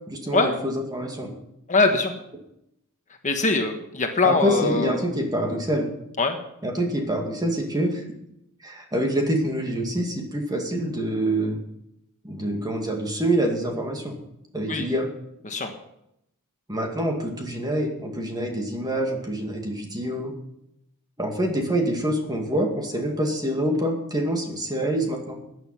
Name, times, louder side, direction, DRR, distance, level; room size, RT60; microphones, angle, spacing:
voice 1, 0.1-1.3 4.2-5.9 6.6-8.0 8.6-11.6 12.2-14.2 14.5-15.1 16.7-20.3 21.2-25.4, right 1 dB, 20° right, 2 dB, 2.2 m, -26 dB
voice 2, 1.7-2.1 3.2-5.0 6.2-6.4 14.7-14.9 15.4-15.7, left 3 dB, 35° left, 4 dB, 1.3 m, -22 dB
14.5 x 9.5 x 5.8 m, 0.79 s
head